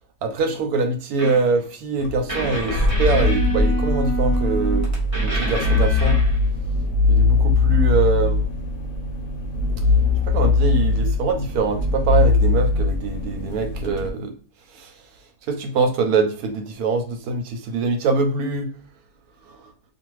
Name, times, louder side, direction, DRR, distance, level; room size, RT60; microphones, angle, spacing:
voice 1, 0.2-4.9 5.2-6.2 7.1-8.4 10.3-14.3 14.7-14.9 15.5-18.7 19.5-19.6, right 4 dB, 70° right, 6 dB, 1.0 m, -23 dB
sound 1, 1.2-1.6 2.3-6.5, left 1 dB, 25° right, 1.0 m, -28 dB
sound 2, 2.0-14.1, left 3 dB, 70° left, 1.0 m, -21 dB
2.5 x 2.4 x 3.0 m, 0.42 s
omnidirectional pair, 1.8 m